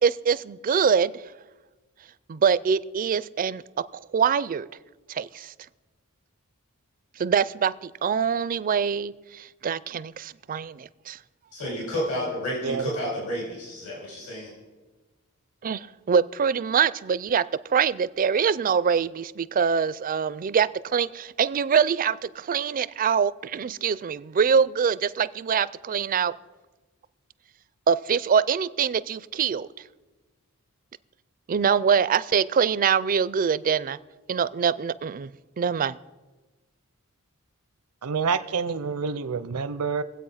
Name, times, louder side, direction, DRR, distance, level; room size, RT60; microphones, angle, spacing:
voice 1, 0.0-1.1 2.3-3.6 3.9-4.7 5.1-5.5 7.2-11.2 15.6-17.4 17.7-26.3 27.9-29.7 31.5-34.0 34.3-35.3 35.6-36.0, right 6 dB, 40° right, 18 dB, 0.4 m, -24 dB
voice 2, 11.5-14.5, equal, 70° left, -3 dB, 4.7 m, -31 dB
voice 3, 38.0-40.0, right 5 dB, 80° right, 12 dB, 0.6 m, -27 dB
21.5 x 8.2 x 5.7 m, 1.2 s
head